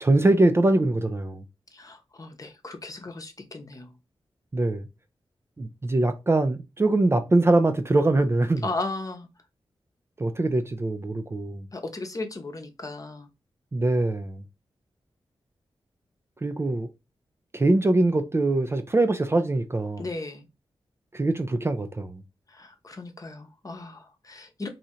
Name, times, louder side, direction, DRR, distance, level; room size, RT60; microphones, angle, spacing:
voice 1, 0.0-1.4 4.5-4.9 5.6-8.7 10.2-11.7 13.7-14.4 16.4-16.9 17.5-20.1 21.1-22.2, right 2 dB, 25° right, 0.4 m, -23 dB
voice 2, 1.7-3.9 8.6-9.3 11.7-13.3 20.0-20.4 22.5-24.7, left 2 dB, 35° left, 0.8 m, -36 dB
2.7 x 2.4 x 4.2 m
cardioid pair, 60°, 10 cm